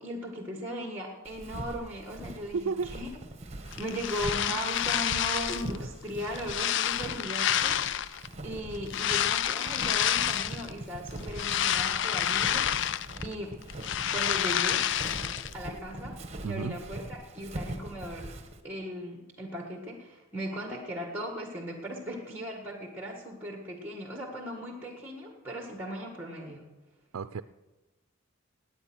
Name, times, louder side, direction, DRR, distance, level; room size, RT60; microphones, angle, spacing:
voice 1, 0.0-3.1 3.8-13.0 13.2-13.5 14.1-14.8 15.5-16.2 16.4-18.3 18.6-26.6, equal, 10° right, 2 dB, 1.7 m, -38 dB
Walk footsteps, 1.3-18.6, right 1 dB, 30° right, 1.3 m, -42 dB
voice 2, 2.5-3.0 16.4-16.8 27.1-27.4, right 5 dB, 90° right, 11 dB, 0.5 m, -32 dB
sound 1, 3.7-5.8 6.2-8.3 8.9-10.7 11.1-13.3 13.6-15.5, left 10 dB, 55° left, 0.4 m, -29 dB
18.5 x 9.4 x 6.2 m, 1.1 s
head